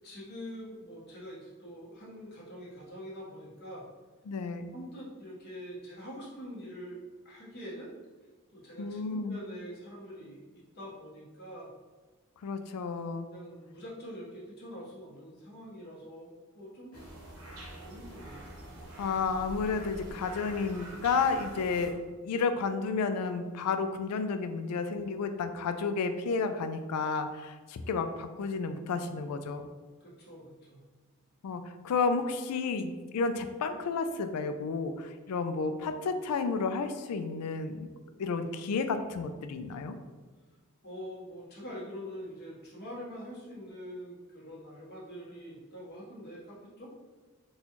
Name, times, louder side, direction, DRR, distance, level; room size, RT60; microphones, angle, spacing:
voice 1, 0.0-3.9 4.7-7.0 7.2-7.9 8.5-11.7 13.3-16.3 16.5-17.0 17.8-18.5 30.0-30.8 40.8-46.9, equal, 50° left, -6 dB, 1.1 m, -44 dB
voice 2, 4.3-4.7 8.8-9.4 12.4-13.3 19.0-21.9 22.2-29.7 31.4-37.9 38.2-39.9, left 4 dB, 90° left, 8 dB, 0.3 m, -31 dB
sound 1, 16.9-21.9, right 1 dB, 90° right, 0.9 m, -45 dB
4.1 x 2.3 x 2.9 m, 1.3 s
head